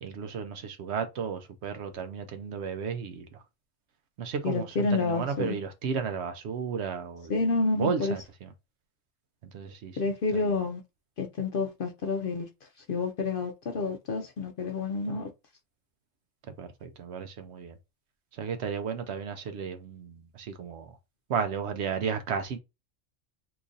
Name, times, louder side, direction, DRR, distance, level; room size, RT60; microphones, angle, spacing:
voice 1, 0.0-3.4 4.2-8.5 9.5-10.0 10.3-10.5 16.6-17.8 18.3-20.9 21.3-22.6, right 6 dB, 65° right, 0.8 m, -34 dB
voice 2, 4.4-5.6 7.3-8.1 10.0-10.8 11.2-12.5 12.9-15.3, left 3 dB, 60° left, 0.6 m, -29 dB
3.0 x 2.5 x 3.8 m
omnidirectional pair, 1.3 m